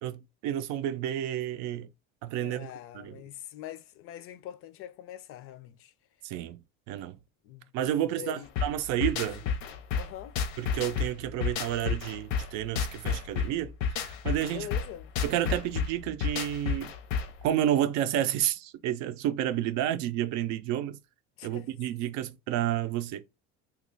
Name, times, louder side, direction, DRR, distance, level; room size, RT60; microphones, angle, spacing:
voice 1, 0.0-1.9 2.2-3.2 6.2-6.6 6.9-7.2 7.7-9.4 10.6-13.7 14.0-14.7 15.2-16.9 17.4-21.0 21.4-23.3, right 11 dB, 70° right, 0.5 m, -30 dB
voice 2, 2.4-5.9 7.4-7.7 8.2-8.5 9.4-10.4 14.4-15.1 21.4-22.1, left 12 dB, 50° left, 0.4 m, -44 dB
sound 1, 8.6-17.4, left 6 dB, 80° left, 0.7 m, -31 dB
3.0 x 2.3 x 3.8 m
cardioid pair, 140°, 29 cm